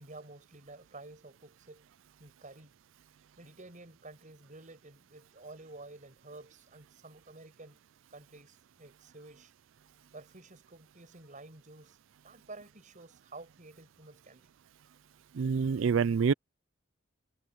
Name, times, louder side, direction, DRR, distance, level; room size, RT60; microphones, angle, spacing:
voice 1, 0.0-1.9 2.2-2.7 3.4-7.8 8.1-9.5 10.1-12.0 12.2-14.5, right 2 dB, 40° right, 5.7 m, -51 dB
voice 2, 15.3-16.3, right 6 dB, 70° right, 0.4 m, -26 dB
head